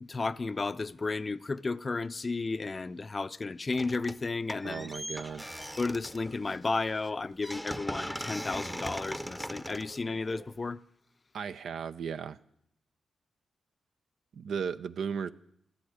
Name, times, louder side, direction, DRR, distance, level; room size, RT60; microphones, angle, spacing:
voice 1, 0.0-4.9 5.8-10.8, left 3 dB, 40° left, 0.5 m, -33 dB
sound 1, 3.7-4.2 4.5-10.7, equal, 5° right, 0.7 m, -40 dB
voice 2, 4.6-5.5 11.3-12.4 14.3-15.3, right 6 dB, 75° right, 0.6 m, -35 dB
13.5 x 8.0 x 10.0 m
supercardioid pair, 45°, 0 cm